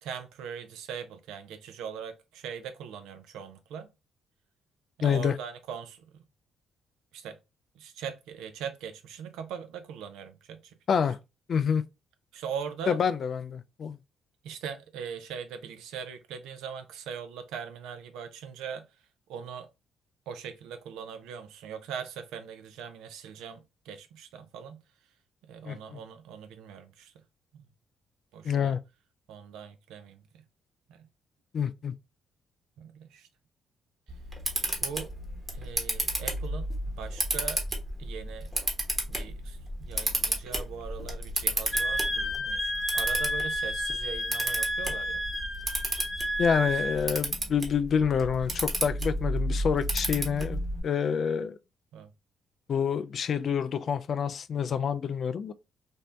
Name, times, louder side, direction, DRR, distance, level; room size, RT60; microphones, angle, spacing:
voice 1, 0.0-3.9 5.0-6.1 7.1-7.4 7.8-10.7 12.3-13.0 14.4-18.9 19.3-19.7 20.3-24.8 25.5-27.1 28.3-28.7 29.3-30.4 30.9-31.1 32.8-33.3 34.8-35.1 35.5-37.6 38.0-38.5 39.1-45.2 46.6-46.7 51.9-52.1, right 7 dB, 90° right, 0.5 m, -41 dB
voice 2, 5.0-5.4 10.9-11.2 11.5-11.8 12.9-14.0 25.7-26.0 28.4-28.8 31.5-31.9 46.4-51.6 52.7-55.5, left 7 dB, 55° left, 0.3 m, -27 dB
Camera, 34.1-50.8, right 1 dB, 25° right, 1.0 m, -33 dB
Wind instrument woodwind instrument, 41.7-47.0, equal, 20° left, 0.7 m, -31 dB
2.6 x 2.1 x 3.1 m
cardioid pair, 80°, 0 cm